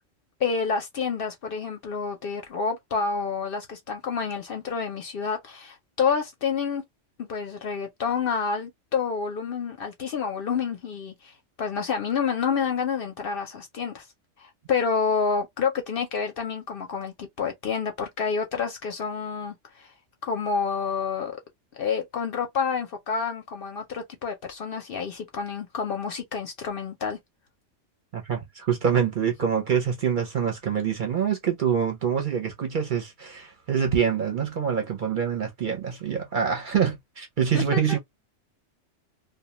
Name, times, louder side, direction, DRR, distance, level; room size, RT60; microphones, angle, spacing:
voice 1, 0.4-6.8 7.2-14.1 14.4-19.9 20.2-21.4 21.8-27.2 37.5-38.0, left 5 dB, 60° left, 0.7 m, -28 dB
voice 2, 28.1-38.0, right 7 dB, 50° right, 0.7 m, -25 dB
2.2 x 2.2 x 2.8 m
omnidirectional pair, 1.3 m